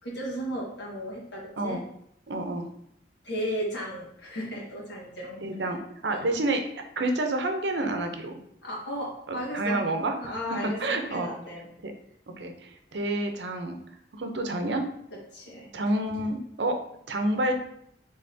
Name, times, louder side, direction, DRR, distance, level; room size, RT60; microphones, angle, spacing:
voice 1, 0.0-1.8 3.2-5.4 6.1-6.3 8.6-9.8 10.2-11.7 15.1-15.7 16.1-16.2, equal, 75° left, -4 dB, 1.6 m, -35 dB
voice 2, 2.3-2.7 5.4-5.8 6.0-6.6 7.0-8.4 9.3-11.3 11.8-11.9 12.4-13.8 14.1-14.8 15.7-16.8 17.1-17.6, right 1 dB, 75° right, 5 dB, 0.7 m, -29 dB
5.5 x 3.5 x 2.7 m, 0.72 s
head